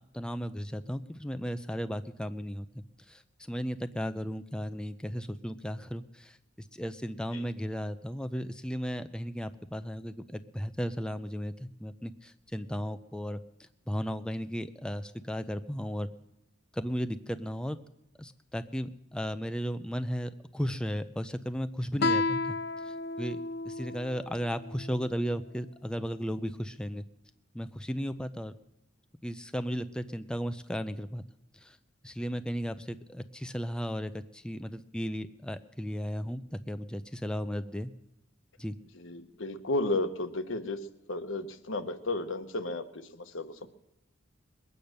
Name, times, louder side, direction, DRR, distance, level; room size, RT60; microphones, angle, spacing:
voice 1, 0.1-16.1 16.7-17.8 18.2-22.6 22.8-27.0 27.5-28.5 29.2-31.2 31.5-31.8 32.0-37.9 38.6-38.7, equal, 5° left, 10 dB, 0.4 m, -35 dB
Guitar, 22.0-25.2, left 3 dB, 55° left, 0.5 m, -32 dB
voice 2, 38.9-40.8 41.1-43.7, left 2 dB, 75° left, 8 dB, 1.2 m, -33 dB
21.5 x 8.7 x 6.6 m, 0.88 s
head